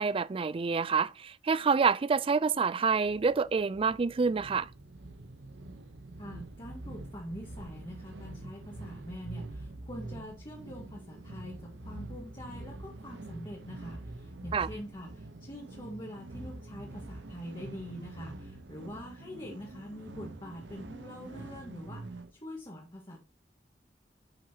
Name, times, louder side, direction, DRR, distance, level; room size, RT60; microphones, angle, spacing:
voice 1, 0.0-4.7 14.5-14.7, right 5 dB, 30° right, 0.4 m, -27 dB
sound 1, 2.8-22.3, right 2 dB, 90° right, 0.9 m, -45 dB
voice 2, 6.2-22.0 22.3-23.2, equal, 25° left, 1.7 m, -44 dB
10.0 x 6.0 x 2.9 m
head